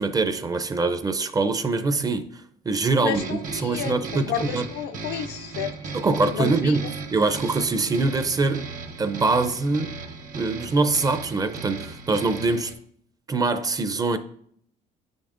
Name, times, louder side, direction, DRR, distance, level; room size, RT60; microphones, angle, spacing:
voice 1, 0.0-4.7 5.9-8.7 9.0-10.0 10.3-12.7 13.3-14.2, right 3 dB, 20° right, 0.5 m, -24 dB
voice 2, 3.0-5.9 6.3-6.8, left 9 dB, 80° left, 0.5 m, -31 dB
sound 1, 3.1-12.7, right 4 dB, 50° right, 0.9 m, -36 dB
8.8 x 5.2 x 2.5 m
cardioid pair, 110°, 17 cm